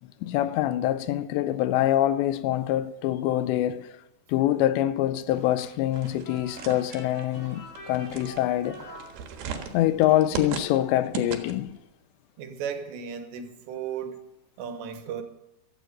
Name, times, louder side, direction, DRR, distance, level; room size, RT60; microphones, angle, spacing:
voice 1, 0.0-3.9 4.3-8.8 9.7-11.8, left 13 dB, 90° left, 3.0 m, -25 dB
sound 1, 5.2-10.8, right 1 dB, 5° right, 4.5 m, -51 dB
sound 2, 5.9-11.8, right 6 dB, 65° right, 3.2 m, -38 dB
sound 3, 6.2-9.8, left 1 dB, 65° left, 8.7 m, -45 dB
voice 2, 12.4-14.2 14.6-15.2, right 7 dB, 85° right, 3.5 m, -35 dB
15.5 x 12.5 x 5.4 m
omnidirectional pair, 4.9 m